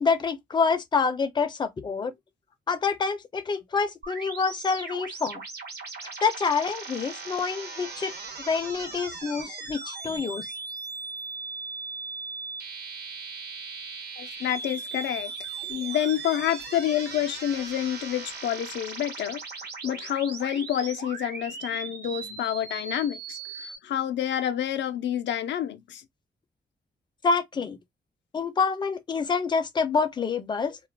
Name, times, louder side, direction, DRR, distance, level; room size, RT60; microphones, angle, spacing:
voice 1, 0.0-2.1 2.7-5.4 6.2-8.1 8.5-10.5 27.2-27.8 28.3-30.8, left 5 dB, 25° left, 0.4 m, -27 dB
sound 1, 4.0-23.8, right 4 dB, 65° right, 1.0 m, -38 dB
voice 2, 14.2-15.3 15.7-19.4 19.8-26.0, left 10 dB, 85° left, 0.4 m, -28 dB
2.3 x 2.1 x 3.2 m
wide cardioid pair, 115°, 18 cm